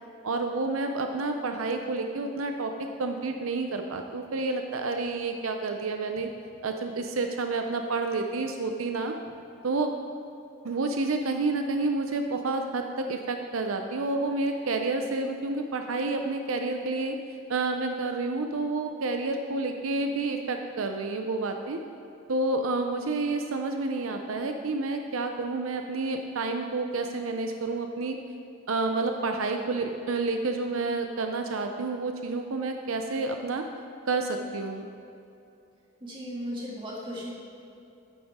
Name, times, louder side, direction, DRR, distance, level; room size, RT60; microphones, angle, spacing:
voice 1, 0.2-2.7 3.0-6.3 6.6-9.1 9.6-9.9 10.6-17.2 17.5-21.8 22.3-28.2 28.7-33.6 34.1-34.9, right 3 dB, 85° right, 5 dB, 0.6 m, -29 dB
voice 2, 36.0-37.3, equal, 25° right, -5 dB, 2.0 m, -36 dB
11.0 x 9.4 x 3.7 m, 2.7 s
head